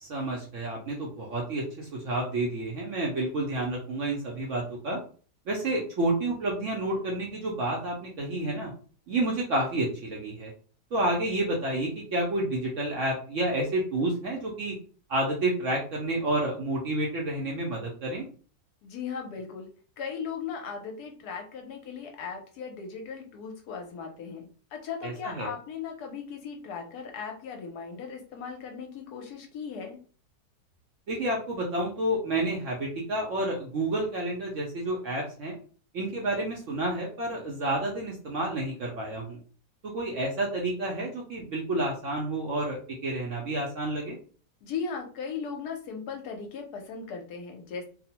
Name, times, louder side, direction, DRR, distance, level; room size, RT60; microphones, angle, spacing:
voice 1, 0.0-5.0 5.5-8.7 9.1-10.5 10.9-14.8 15.1-18.2 25.0-25.5 31.1-35.6 35.9-39.4 39.8-44.2, right 1 dB, 65° right, -2 dB, 0.8 m, -30 dB
voice 2, 18.8-19.7 20.0-30.0 44.6-47.9, left 6 dB, 75° left, 3 dB, 1.1 m, -37 dB
2.9 x 2.0 x 2.8 m, 0.41 s
omnidirectional pair, 1.8 m